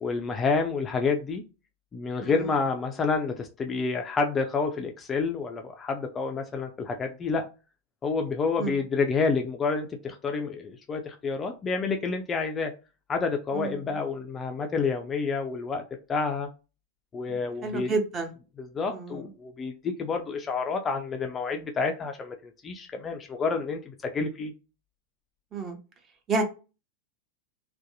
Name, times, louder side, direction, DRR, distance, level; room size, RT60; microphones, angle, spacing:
voice 1, 0.0-1.4 1.9-7.5 8.0-12.7 13.1-15.8 16.1-16.5 17.1-17.9 18.6-24.5, left 4 dB, 20° left, 0.3 m, -29 dB
voice 2, 2.2-2.5 8.6-8.8 13.5-13.9 17.6-18.3 18.9-19.2 25.5-25.8 26.3-26.4, right 3 dB, 25° right, 0.7 m, -30 dB
2.6 x 2.2 x 2.5 m
figure-of-eight pair, 90°, 0 cm